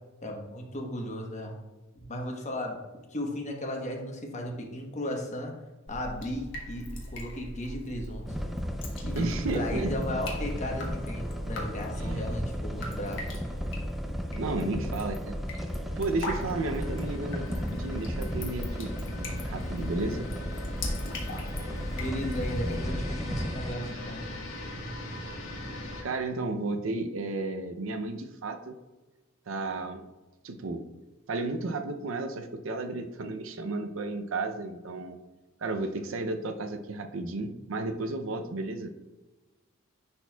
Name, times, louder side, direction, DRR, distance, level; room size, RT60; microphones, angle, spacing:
voice 1, 0.2-1.6 2.1-2.8 3.1-5.5 5.9-8.3 9.0-9.3 9.5-13.3 22.0-24.2, left 1 dB, 35° left, 1 dB, 1.1 m, -35 dB
Drip, 5.9-22.9, left 1 dB, 60° left, 1.4 m, -40 dB
sound 1, 8.3-23.8, equal, ahead, 0.5 m, -35 dB
voice 2, 9.2-9.9 12.0-12.4 14.3-15.4 16.0-20.3 26.0-28.8 29.5-30.0 30.4-30.8 31.3-35.2 35.6-38.9, right 2 dB, 70° right, 7 dB, 0.6 m, -33 dB
sound 2, 16.2-26.0, left 1 dB, 85° left, 1.5 m, -40 dB
10.5 x 4.2 x 2.3 m, 1.1 s
head